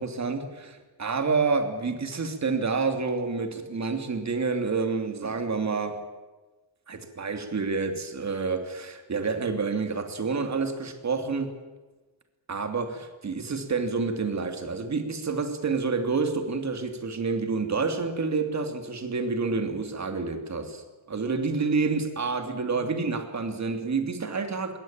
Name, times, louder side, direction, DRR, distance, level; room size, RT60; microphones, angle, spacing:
voice 1, 0.0-6.0 6.9-11.5 12.5-24.8, right 4 dB, 35° right, 7 dB, 2.9 m, -28 dB
21.5 x 18.0 x 9.0 m, 1.3 s
cardioid pair, 120°, 47 cm